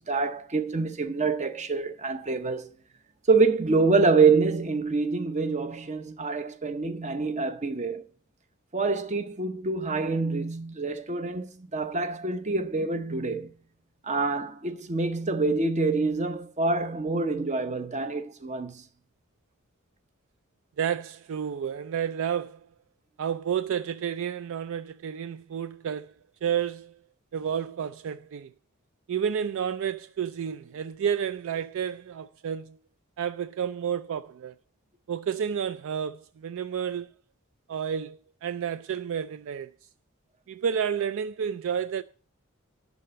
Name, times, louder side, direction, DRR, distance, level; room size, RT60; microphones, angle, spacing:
voice 1, 0.1-2.7 3.3-8.0 8.7-13.5 14.0-18.8, right 4 dB, 35° right, 0.8 m, -26 dB
voice 2, 20.8-22.6 23.2-26.1 26.4-27.0 27.3-28.5 29.1-32.8 33.2-34.5 35.1-37.1 37.7-39.7 40.5-42.0, right 8 dB, 65° right, 0.4 m, -30 dB
11.5 x 4.2 x 7.7 m
head